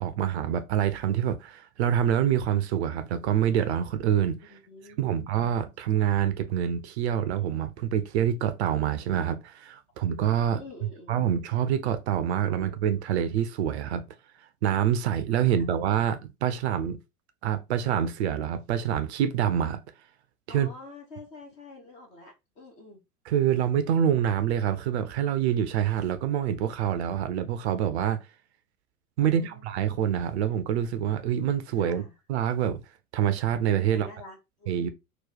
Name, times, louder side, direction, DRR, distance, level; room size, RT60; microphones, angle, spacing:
voice 1, 0.0-4.5 5.0-10.6 11.1-14.0 14.6-17.0 17.4-19.8 20.5-20.7 23.3-28.2 29.2-32.0 32.3-32.8 33.1-34.1 34.7-34.9, right 9 dB, 45° right, 0.5 m, -26 dB
voice 2, 4.5-5.2 10.5-11.2 20.5-23.0 29.2-29.6 31.8-32.2 33.9-34.9, left 3 dB, 15° left, 0.4 m, -47 dB
2.9 x 2.2 x 3.8 m
figure-of-eight pair, 90°, 48 cm